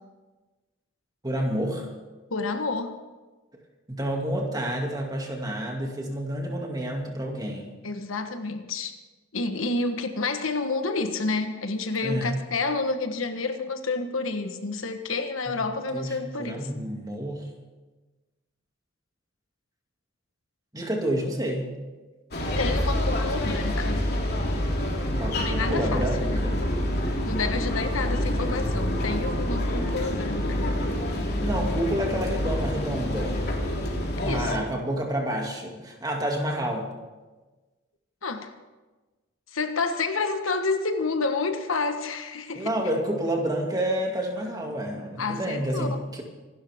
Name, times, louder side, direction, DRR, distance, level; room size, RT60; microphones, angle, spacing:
voice 1, 1.2-1.9 3.9-7.7 12.0-12.4 15.5-15.6 15.9-17.5 20.7-21.7 25.1-26.6 31.2-33.4 34.2-36.9 42.5-46.2, right 1 dB, 20° right, 1 dB, 2.4 m, -29 dB
voice 2, 2.3-3.0 7.8-9.0 9.3-16.7 22.6-24.0 25.4-26.4 27.2-30.7 34.2-34.6 38.2-38.5 39.5-42.7 45.2-46.0, left 3 dB, 80° left, 7 dB, 1.4 m, -29 dB
sound 1, 22.3-34.6, left 1 dB, 55° left, 3.0 m, -27 dB
25.5 x 12.0 x 3.7 m, 1.2 s
head